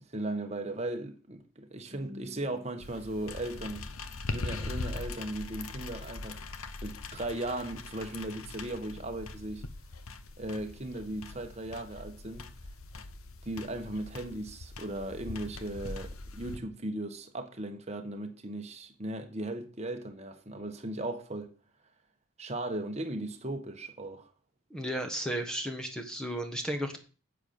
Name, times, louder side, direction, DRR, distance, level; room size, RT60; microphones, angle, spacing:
voice 1, 0.0-3.9 4.3-9.7 10.4-12.5 13.4-21.5 22.4-24.3, right 1 dB, 30° right, 1.4 m, -37 dB
sound 1, 2.8-16.6, left 3 dB, 75° left, 1.0 m, -41 dB
voice 2, 24.7-27.0, equal, 5° left, 1.4 m, -34 dB
9.5 x 8.1 x 6.7 m
head